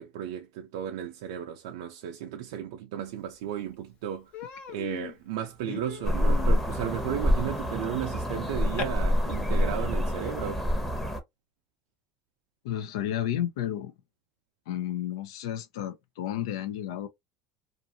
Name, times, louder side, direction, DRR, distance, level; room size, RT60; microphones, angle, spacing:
voice 1, 0.0-4.3 4.7-10.6, right 9 dB, 85° right, 0.4 m, -34 dB
Human voice, 3.3-3.4 3.7-3.9 4.3-8.8, left 8 dB, 55° left, 0.8 m, -41 dB
sound 1, 6.0-11.2, equal, 5° left, 0.8 m, -27 dB
voice 2, 12.6-13.9 14.7-17.1, left 11 dB, 90° left, 0.5 m, -32 dB
2.5 x 2.5 x 2.6 m
supercardioid pair, 115°, 3 cm